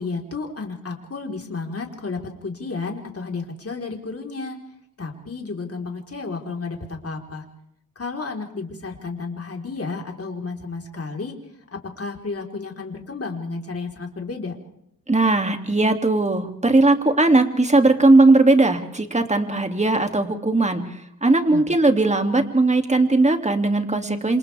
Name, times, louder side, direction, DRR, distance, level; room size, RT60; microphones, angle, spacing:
voice 1, 0.0-4.6 5.0-7.4 8.0-11.4 11.7-14.6 21.5-21.6, left 4 dB, 45° left, 1 dB, 4.2 m, -32 dB
voice 2, 15.1-24.4, right 2 dB, 20° right, 5 dB, 2.6 m, -18 dB
28.0 x 27.5 x 3.5 m, 0.75 s
wide cardioid pair, 85°, 33 cm